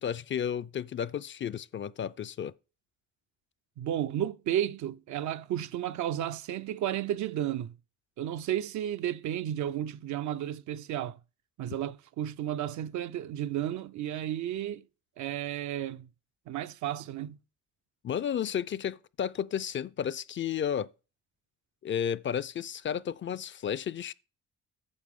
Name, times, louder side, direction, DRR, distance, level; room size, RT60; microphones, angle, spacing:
voice 1, 0.0-2.5 18.0-20.9 21.8-24.1, left 8 dB, 40° left, 0.4 m, -32 dB
voice 2, 3.8-7.7 8.2-11.2 11.6-14.8 15.2-16.1 16.5-17.4, right 11 dB, 75° right, 0.6 m, -33 dB
9.7 x 6.5 x 3.6 m
cardioid pair, 90°, 30 cm